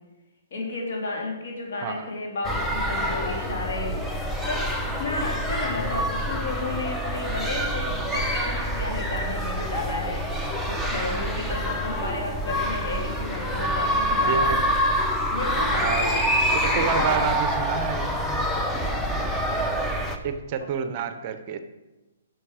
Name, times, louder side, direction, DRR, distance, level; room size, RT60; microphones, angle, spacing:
voice 1, 0.5-4.0 4.4-10.2 10.7-14.6 15.3-17.3, left 3 dB, 65° left, -1 dB, 2.9 m, -32 dB
voice 2, 1.7-2.1 14.3-14.6 15.8-16.2 16.5-18.3 20.2-21.6, right 6 dB, 35° right, 9 dB, 0.7 m, -29 dB
sound 1, 2.4-20.2, equal, 5° left, 0.7 m, -26 dB
9.5 x 6.2 x 5.0 m, 1.1 s
hypercardioid pair, 150°, 0 cm